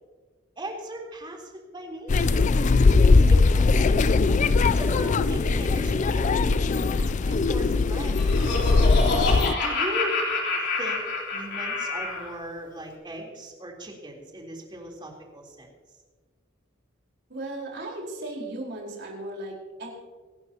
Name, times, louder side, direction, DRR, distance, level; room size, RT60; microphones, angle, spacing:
voice 1, 0.6-2.5 3.3-4.2 4.6-8.7 9.5-10.2 10.8-15.7, right 1 dB, 25° right, -1 dB, 3.6 m, -38 dB
sound 1, 2.1-9.5, left 3 dB, 40° left, 0.4 m, -20 dB
Laughter, 7.8-12.3, left 3 dB, 60° left, 4.0 m, -28 dB
voice 2, 17.3-19.9, right 2 dB, 60° right, -1 dB, 4.5 m, -36 dB
26.5 x 11.5 x 2.9 m, 1.5 s
head